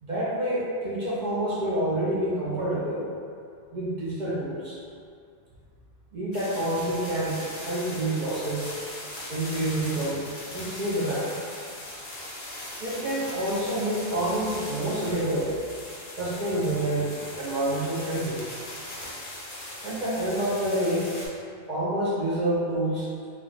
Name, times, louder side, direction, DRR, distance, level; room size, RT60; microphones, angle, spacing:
voice 1, 0.0-3.1 3.7-4.8 6.1-8.7 9.3-10.2 10.5-11.4 12.8-15.6 16.1-17.1 17.4-18.4 19.8-21.1 21.7-23.1, right 1 dB, 50° right, -8 dB, 0.7 m, -28 dB
sound 1, 6.3-21.3, left 1 dB, 45° left, 0.6 m, -40 dB
2.4 x 2.3 x 3.8 m, 2.2 s
omnidirectional pair, 1.2 m